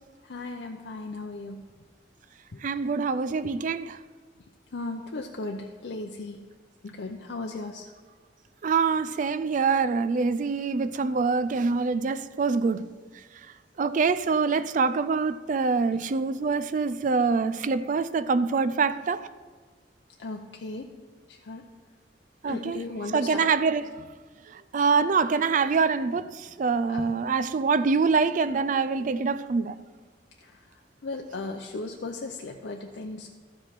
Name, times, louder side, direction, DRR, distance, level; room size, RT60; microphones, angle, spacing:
voice 1, 0.2-1.6 2.5-2.6 3.4-3.5 4.7-6.4 6.8-7.8 16.4-16.5 20.2-20.9 21.3-21.7 22.5-23.6 26.9-27.2 30.4-30.6 31.0-33.3, left 3 dB, 80° left, 0.6 m, -36 dB
voice 2, 2.6-4.0 8.6-12.9 13.8-19.3 22.4-22.8 23.1-23.9 24.7-29.8, right 4 dB, 45° right, 0.4 m, -25 dB
13.0 x 5.1 x 5.8 m
head